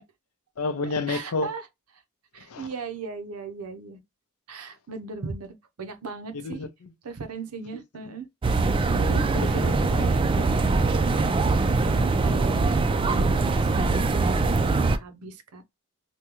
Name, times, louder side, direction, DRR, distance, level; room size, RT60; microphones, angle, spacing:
voice 1, 0.6-1.5 2.4-2.7 6.3-6.9 7.7-7.8 8.9-10.5, left 3 dB, 70° left, 0.6 m, -32 dB
voice 2, 1.1-1.6 2.3-4.0 4.5-6.6 7.0-8.3 9.4-9.7 10.9-11.3 11.8-12.7 13.0-15.6, right 4 dB, 80° right, 0.7 m, -38 dB
sound 1, 8.4-15.0, right 3 dB, 25° right, 0.3 m, -22 dB
3.5 x 2.2 x 2.9 m
head